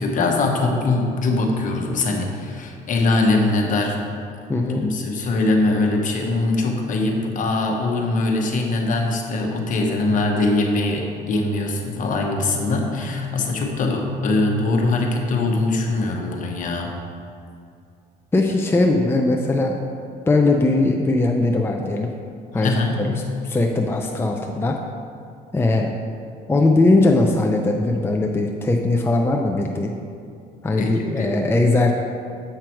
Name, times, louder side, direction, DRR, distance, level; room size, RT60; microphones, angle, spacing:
voice 1, 0.0-4.0 4.8-16.9 22.5-23.0 30.7-31.4, left 2 dB, 50° left, 1 dB, 1.2 m, -22 dB
voice 2, 4.5-4.8 18.3-19.8 20.3-22.1 22.5-23.2 23.4-24.8 25.5-25.9 26.5-29.9 30.6-31.9, left 2 dB, 15° left, 1 dB, 0.5 m, -19 dB
7.7 x 5.8 x 4.6 m, 2.4 s
cardioid pair, 110°, 17 cm